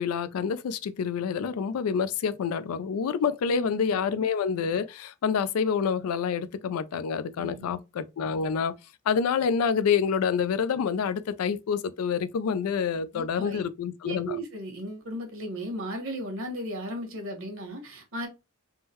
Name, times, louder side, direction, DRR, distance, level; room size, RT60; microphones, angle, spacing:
voice 1, 0.0-8.7 9.1-14.4, left 6 dB, 85° left, 0.3 m, -27 dB
voice 2, 3.5-4.0 7.4-7.8 13.1-13.6 14.0-18.3, right 1 dB, 65° right, 1.1 m, -36 dB
3.7 x 2.1 x 2.8 m
head